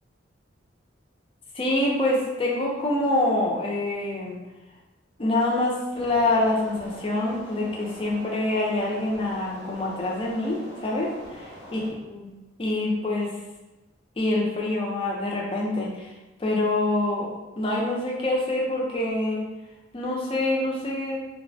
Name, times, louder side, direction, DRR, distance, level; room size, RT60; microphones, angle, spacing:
voice 1, 1.5-4.4 5.2-11.8 12.1-13.4 14.2-16.1 16.4-17.3 17.6-19.5 19.9-21.2, left 2 dB, 30° left, -2 dB, 0.4 m, -26 dB
sound 1, 5.9-11.9, equal, 60° right, 0.7 m, -43 dB
3.3 x 2.0 x 2.5 m, 1.1 s
head